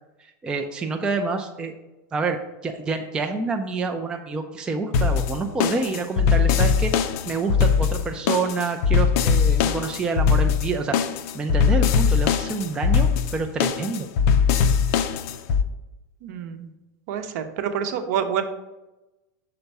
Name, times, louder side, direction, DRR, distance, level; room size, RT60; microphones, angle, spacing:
voice 1, 0.2-1.7 2.1-6.9 7.3-11.0 11.3-14.1, right 4 dB, 10° right, 4 dB, 0.3 m, -27 dB
sound 1, 4.9-15.6, left 6 dB, 50° left, 0.5 m, -21 dB
voice 2, 16.2-16.7 17.1-18.4, right 8 dB, 60° right, 8 dB, 0.8 m, -27 dB
5.8 x 4.4 x 5.3 m, 1.0 s
supercardioid pair, 165°, 10 cm